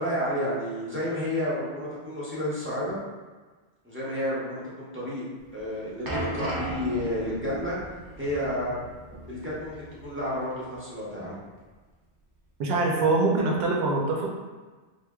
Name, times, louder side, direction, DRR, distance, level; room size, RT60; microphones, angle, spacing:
voice 1, 0.0-3.0 3.8-5.2 5.5-7.8 8.2-8.8 9.3-11.4, left 1 dB, 15° right, -8 dB, 0.7 m, -31 dB
sound 1, 5.5-10.3 10.6-10.8 11.5-11.6, right 1 dB, 35° right, 0.3 m, -37 dB
voice 2, 12.6-14.3, right 3 dB, 70° right, -1 dB, 0.9 m, -24 dB
2.9 x 2.1 x 3.5 m, 1.3 s
omnidirectional pair, 1.1 m